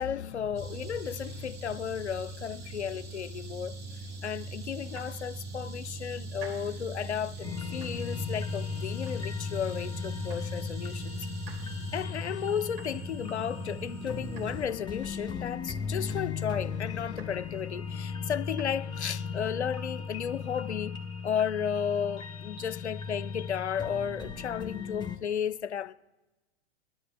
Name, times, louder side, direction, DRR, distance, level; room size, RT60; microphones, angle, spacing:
voice 1, 0.0-11.3 11.9-25.9, left 8 dB, 85° left, 0.6 m, -34 dB
sound 1, 0.6-14.7, right 2 dB, 30° right, 1.9 m, -41 dB
Domestic sounds home sounds, 4.7-5.6 6.0-6.9 7.3-8.2 8.5-9.6 9.9-10.7 11.0-15.5 15.9-16.6 16.9-17.6 18.0-18.7, right 4 dB, 60° right, 3.6 m, -54 dB
sound 2, 7.4-25.2, left 5 dB, 15° left, 1.1 m, -37 dB
22.5 x 13.0 x 2.2 m
figure-of-eight pair, 95°, 33 cm